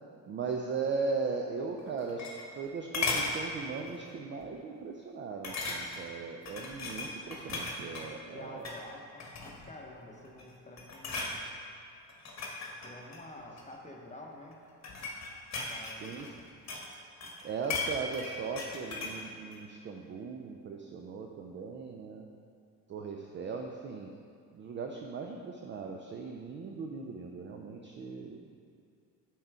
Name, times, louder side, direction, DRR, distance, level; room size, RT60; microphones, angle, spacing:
voice 1, 0.3-2.3 2.6-8.7 16.0-16.3 17.4-22.2 22.9-24.1 24.5-28.6, right 4 dB, 25° right, 2 dB, 0.4 m, -38 dB
sound 1, 1.8-2.7 2.9-3.4 3.9-4.1 4.4-4.5 5.4-6.1 6.5-8.1 8.5-8.8 9.2-9.7 10.2-10.5 10.8-11.4 12.1-13.7 14.5-16.9 17.2-19.2 19.5-19.6, left 3 dB, 35° left, 1.2 m, -36 dB
voice 2, 8.2-11.5 12.8-14.6 15.5-16.2, left 1 dB, 15° left, 0 dB, 1.0 m, -49 dB
7.2 x 4.4 x 3.5 m, 2.3 s
figure-of-eight pair, 55°, 49 cm